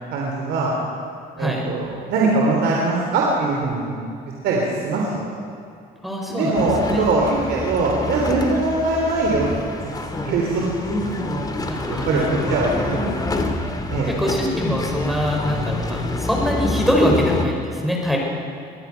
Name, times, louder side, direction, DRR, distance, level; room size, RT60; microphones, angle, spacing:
voice 1, 0.1-0.7 1.4-4.0 4.4-5.3 6.3-9.5 10.2-10.6 10.9-11.5 11.8-13.1 13.9-14.3, right 3 dB, 75° right, -2 dB, 3.6 m, -22 dB
voice 2, 6.0-7.0 11.7-12.6 14.1-18.2, equal, ahead, -1 dB, 5.5 m, -23 dB
sound 1, 6.5-17.5, left 2 dB, 20° left, 2.3 m, -27 dB
24.5 x 18.5 x 5.9 m, 2.5 s
cardioid pair, 110°, 17 cm